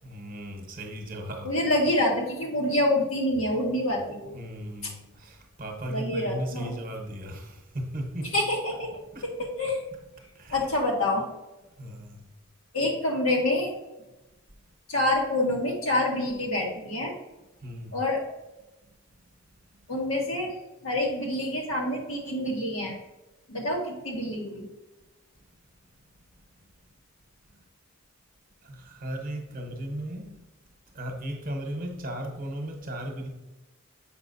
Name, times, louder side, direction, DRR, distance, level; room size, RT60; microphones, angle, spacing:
voice 1, 0.0-1.6 4.3-8.3 9.1-9.5 10.2-10.7 11.8-12.3 17.6-18.0 18.8-18.9 19.7-19.8 28.6-30.4 30.9-33.3, equal, 40° right, 3 dB, 1.0 m, -36 dB
voice 2, 1.4-4.3 5.9-6.7 8.3-8.9 9.4-9.8 10.5-11.2 12.7-13.7 14.9-17.1 17.9-18.2 19.9-20.5 20.8-22.9 23.5-24.6, left 1 dB, 80° left, -1 dB, 1.6 m, -27 dB
7.0 x 5.5 x 2.7 m, 1.0 s
head